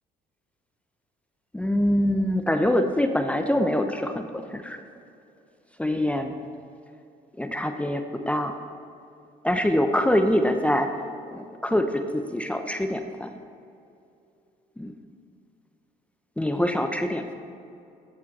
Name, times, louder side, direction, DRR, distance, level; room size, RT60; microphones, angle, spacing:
voice 1, 1.5-4.8 5.8-6.3 7.4-8.5 9.4-10.9 11.3-13.3 14.8-14.9 16.4-17.3, left 1 dB, 5° left, 6 dB, 0.7 m, -24 dB
14.0 x 7.4 x 4.2 m, 2.6 s
supercardioid pair, 80°, 17 cm